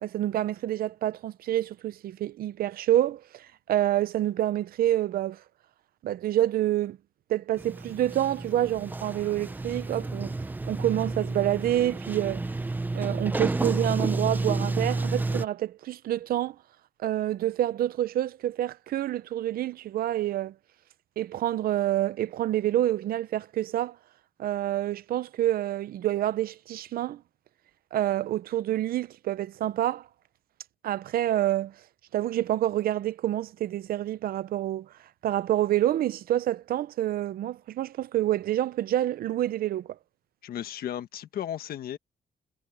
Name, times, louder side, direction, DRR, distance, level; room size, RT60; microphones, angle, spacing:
voice 1, 0.0-5.4 6.0-7.0 7.3-10.3 10.7-12.4 12.9-16.6 17.0-20.5 21.2-24.0 24.4-27.2 27.9-30.1 30.8-31.7 32.1-34.9 35.2-40.0, right 13 dB, 70° right, 0.7 m, -27 dB
Sliding door, 7.6-15.4, right 2 dB, 10° right, 0.6 m, -31 dB
voice 2, 40.4-42.0, left 10 dB, 75° left, 1.4 m, -35 dB
cardioid pair, 160°, 16 cm